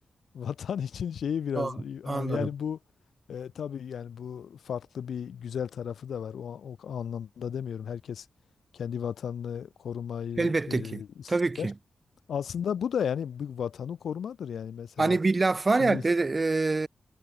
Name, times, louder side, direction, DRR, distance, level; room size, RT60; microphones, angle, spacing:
voice 1, 0.3-2.8 3.3-8.3 8.7-11.7 12.3-15.2 15.8-16.0, left 8 dB, 85° left, 1.1 m, -34 dB
voice 2, 2.1-2.5 10.4-11.0 11.3-11.7 15.0-16.9, right 3 dB, 40° right, 0.4 m, -25 dB
cardioid pair, 55°, 0 cm